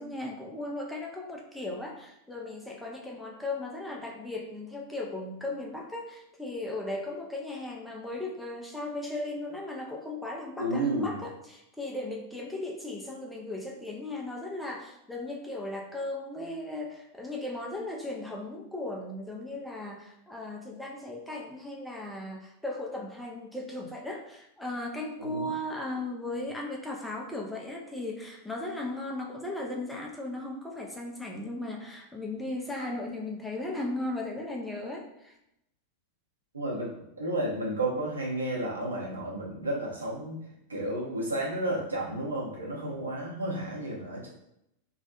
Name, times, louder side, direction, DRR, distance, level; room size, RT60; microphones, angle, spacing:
voice 1, 0.0-35.3, left 2 dB, 5° left, -2 dB, 0.4 m, -37 dB
voice 2, 10.6-11.2 25.2-25.5 36.5-36.9 37.2-40.4 40.7-44.3, right 1 dB, 80° right, -4 dB, 0.7 m, -32 dB
2.3 x 2.1 x 2.8 m, 0.82 s
figure-of-eight pair, 90°, 0 cm